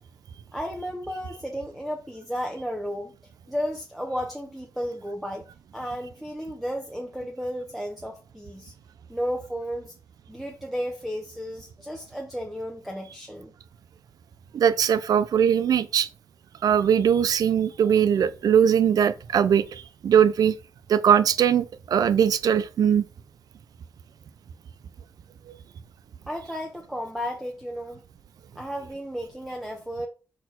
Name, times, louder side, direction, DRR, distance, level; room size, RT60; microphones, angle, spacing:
voice 1, 0.5-3.1 3.5-5.4 5.7-8.7 9.1-9.9 10.3-13.5 26.3-28.0 28.5-30.1, equal, 5° right, 1.0 m, -33 dB
voice 2, 14.5-16.1 16.6-20.6 20.9-23.0 25.5-25.6, right 8 dB, 80° right, 0.4 m, -21 dB
6.3 x 4.3 x 5.8 m
wide cardioid pair, 120°, 6 cm